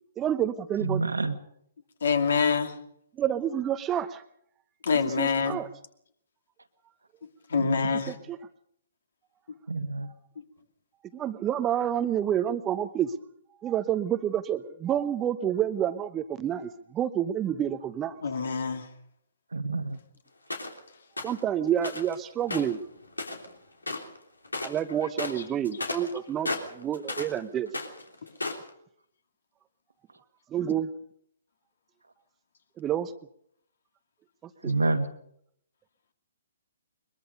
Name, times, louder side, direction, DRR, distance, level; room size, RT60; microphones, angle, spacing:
voice 1, 0.2-1.0 3.1-4.2 5.0-5.7 8.1-8.4 11.1-13.1 13.6-18.2 21.2-22.8 24.6-27.7 30.5-30.9 32.8-33.1 34.6-34.7, right 10 dB, 15° right, 13 dB, 0.8 m, -29 dB
voice 2, 0.8-1.4 7.6-8.0 9.7-10.1 19.5-20.0 34.6-35.1, right 3 dB, 80° right, 7 dB, 1.9 m, -28 dB
voice 3, 2.0-2.7 4.8-5.6 7.5-8.1 18.2-18.9, left 5 dB, 60° left, 7 dB, 2.6 m, -25 dB
sound 1, 20.5-20.8 21.2-21.4 21.8-22.1 22.4-23.5 23.8-24.2 24.4-24.8 25.1-27.4 27.7-28.7, left 2 dB, 80° left, 3.3 m, -34 dB
22.5 x 22.0 x 5.4 m, 0.71 s
figure-of-eight pair, 130°, 0 cm